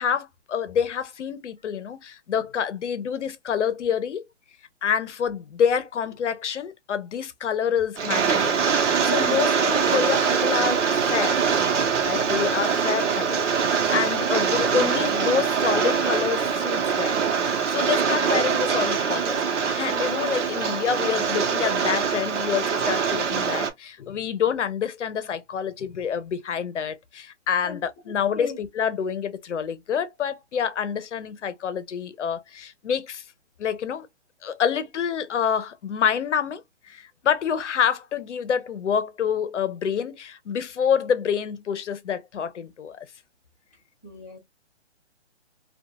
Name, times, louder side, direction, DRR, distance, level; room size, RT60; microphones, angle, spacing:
voice 1, 0.0-4.2 4.8-11.4 12.0-33.2 33.6-34.1 34.4-43.1, left 7 dB, 75° left, 0.7 m, -27 dB
Rain, 8.0-23.7, right 6 dB, 80° right, 0.9 m, -23 dB
voice 2, 12.2-12.7 27.6-27.8 28.3-28.6 44.0-44.4, left 1 dB, 10° left, 0.5 m, -37 dB
2.4 x 2.3 x 2.8 m
hypercardioid pair, 175°, 35 cm